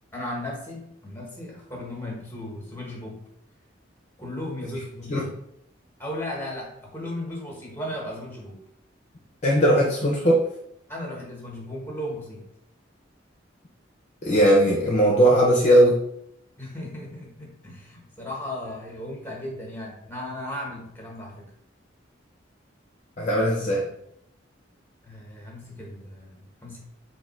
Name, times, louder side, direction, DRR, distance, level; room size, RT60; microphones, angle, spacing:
voice 1, 0.1-3.2 4.2-5.3 6.0-8.6 10.9-12.5 16.6-21.5 25.0-26.8, left 1 dB, 10° left, -2 dB, 1.3 m, -36 dB
voice 2, 9.4-10.4 14.2-16.0 23.2-23.9, right 1 dB, 40° left, -3 dB, 0.8 m, -19 dB
3.7 x 2.8 x 4.3 m, 0.75 s
head